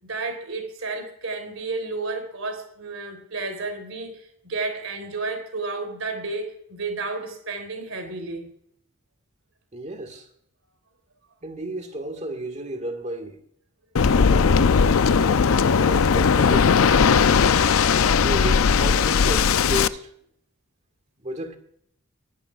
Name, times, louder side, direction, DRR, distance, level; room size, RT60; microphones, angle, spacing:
voice 1, 0.0-8.5, right 3 dB, 65° right, 3.5 m, -32 dB
voice 2, 9.7-10.3 11.4-13.4 14.3-16.9 18.2-20.1 21.2-21.6, right 1 dB, 30° right, 1.8 m, -33 dB
Waves surf, 14.0-19.9, left 6 dB, 70° left, 0.5 m, -18 dB
23.5 x 11.0 x 2.4 m
head